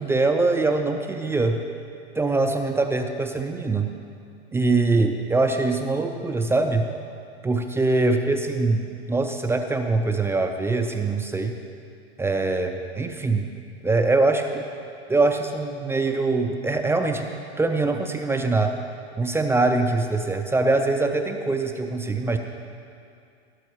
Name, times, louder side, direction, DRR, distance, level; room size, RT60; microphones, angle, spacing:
voice 1, 0.0-1.6 2.1-3.9 4.5-6.9 7.4-11.6 12.2-13.5 13.8-14.6 15.1-17.3 17.6-18.8 19.2-22.4, right 3 dB, 10° right, 4 dB, 0.4 m, -23 dB
17.0 x 6.3 x 4.6 m, 2.4 s
hypercardioid pair, 120°, 32 cm